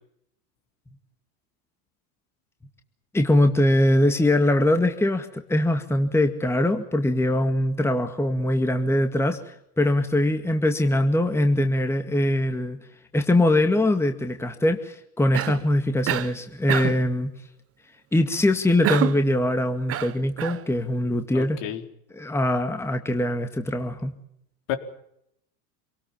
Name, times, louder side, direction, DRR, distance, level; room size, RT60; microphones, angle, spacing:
voice 1, 3.1-12.8 13.1-17.3 18.1-21.6 22.1-24.2, left 1 dB, 5° left, 6 dB, 2.0 m, -22 dB
Cough, 15.3-15.7 16.1-16.4 16.7-17.1 18.8-19.3 19.9-20.6, right 12 dB, 30° right, 1.1 m, -26 dB
voice 2, 21.3-21.8 24.7-24.8, left 11 dB, 60° left, 6 dB, 4.4 m, -30 dB
27.0 x 19.0 x 7.4 m, 0.75 s
supercardioid pair, 115°, 47 cm